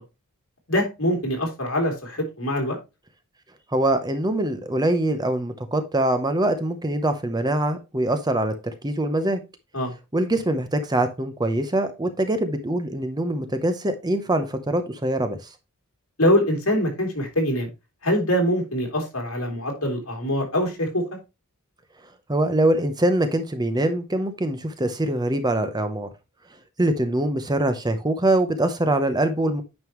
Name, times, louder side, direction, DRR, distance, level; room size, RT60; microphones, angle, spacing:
voice 1, 0.7-2.8 9.7-9.9 16.2-17.7 18.0-21.0, equal, 65° left, 3.2 m, -23 dB
voice 2, 3.7-8.5 8.8-9.4 10.1-15.4 22.3-26.1 26.8-29.6, right 1 dB, 20° right, 0.8 m, -23 dB
9.2 x 5.5 x 3.0 m
head